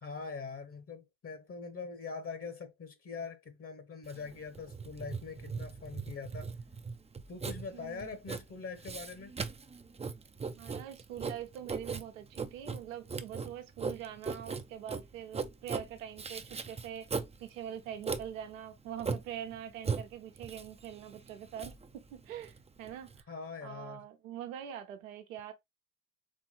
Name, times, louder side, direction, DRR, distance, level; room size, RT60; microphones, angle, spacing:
voice 1, 0.0-6.5 7.3-9.3 23.3-24.1, left 5 dB, 35° left, 1.1 m, -43 dB
Writing, 4.1-23.2, right 5 dB, 15° right, 0.6 m, -39 dB
voice 2, 7.7-8.2 10.6-17.1 17.4-23.1 23.6-25.5, right 10 dB, 75° right, 1.0 m, -44 dB
4.4 x 3.4 x 3.1 m
hypercardioid pair, 55°, 40 cm